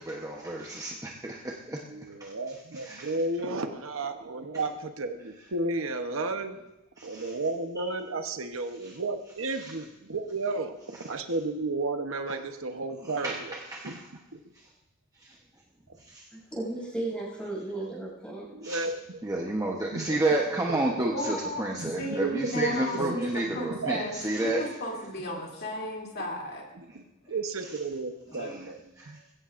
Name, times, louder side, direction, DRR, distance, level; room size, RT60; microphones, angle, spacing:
voice 1, 0.0-1.8 2.2-2.3 2.7-3.1 7.0-7.3 7.8-7.9 13.2-14.0 15.2-15.4 16.0-16.3 18.6-18.9 19.2-24.6 28.3-28.5 29.0-29.2, right 1 dB, 15° right, -1 dB, 1.0 m, -31 dB
voice 2, 1.9-6.6 7.0-13.6 13.8-14.0 14.3-14.4 15.9-16.0 18.5-19.2 19.7-21.1 21.8-24.2 26.7-29.2, right 3 dB, 80° right, 6 dB, 1.0 m, -33 dB
voice 3, 16.3-18.5, right 2 dB, 5° left, -3 dB, 6.7 m, -35 dB
voice 4, 21.1-26.6 28.3-28.5 29.1-29.2, left 1 dB, 50° left, -2 dB, 2.9 m, -35 dB
21.0 x 16.0 x 2.6 m, 0.92 s
head